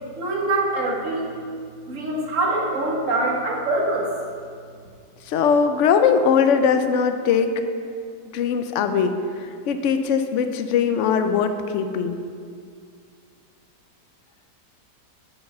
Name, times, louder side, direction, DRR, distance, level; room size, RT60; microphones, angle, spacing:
voice 1, 0.1-1.3 1.9-4.1, right 2 dB, 50° right, -1 dB, 1.6 m, -24 dB
voice 2, 5.3-7.5 8.3-9.2 9.7-12.2, left 6 dB, 70° left, 8 dB, 0.7 m, -20 dB
8.7 x 5.5 x 6.0 m, 2.2 s
omnidirectional pair, 1.8 m